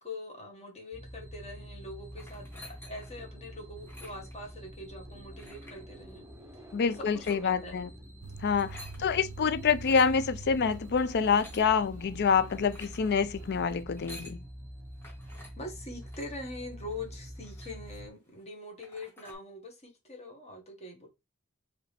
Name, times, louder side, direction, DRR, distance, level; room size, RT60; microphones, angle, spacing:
voice 1, 0.0-2.4 2.8-6.3 7.1-7.8 9.0-9.3 15.6-21.1, left 2 dB, 30° left, 1.5 m, -43 dB
sound 1, 0.9-18.1, equal, 10° right, 0.7 m, -46 dB
sound 2, 2.1-3.2 3.8-4.4 5.4-5.8 7.0-7.4 8.4-9.0 9.7-10.2 11.0-11.7 12.4-13.0 13.8-14.4 15.0-15.5 16.0-16.4 16.9-17.0 17.2-18.1 18.5-18.6 18.8-19.4, left 1 dB, 10° left, 2.0 m, -50 dB
voice 2, 6.7-7.9 8.4-14.4, left 6 dB, 50° left, 0.4 m, -27 dB
sound 3, 8.2-13.8, right 4 dB, 85° right, 0.4 m, -47 dB
4.8 x 3.1 x 3.4 m
head